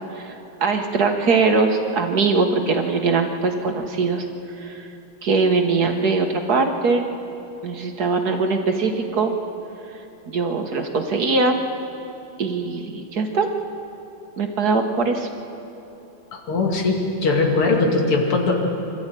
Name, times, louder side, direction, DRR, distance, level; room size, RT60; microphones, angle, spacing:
voice 1, 0.6-4.2 4.6-4.9 5.2-7.1 7.6-9.3 10.3-11.6 12.4-13.5 14.4-15.3, right 4 dB, 50° right, 4 dB, 1.8 m, -21 dB
voice 2, 16.3-18.5, left 3 dB, 90° left, 1 dB, 3.3 m, -20 dB
25.5 x 13.5 x 9.2 m, 2.9 s
omnidirectional pair, 2.3 m